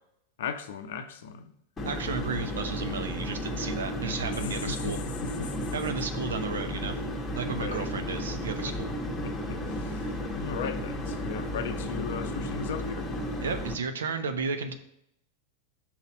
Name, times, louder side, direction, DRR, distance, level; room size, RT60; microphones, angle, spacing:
voice 1, 0.4-1.5 4.3-5.7 7.6-7.9 8.7-8.8 9.2-10.1 10.3-13.1, left 7 dB, 55° left, 0.5 m, -37 dB
sound 1, 1.8-13.7, left 1 dB, 15° left, 1.1 m, -33 dB
voice 2, 1.8-5.0 5.7-7.0 7.3-8.9 13.4-14.7, right 5 dB, 65° right, 0.7 m, -33 dB
5.9 x 4.1 x 5.2 m
figure-of-eight pair, 90°, 0 cm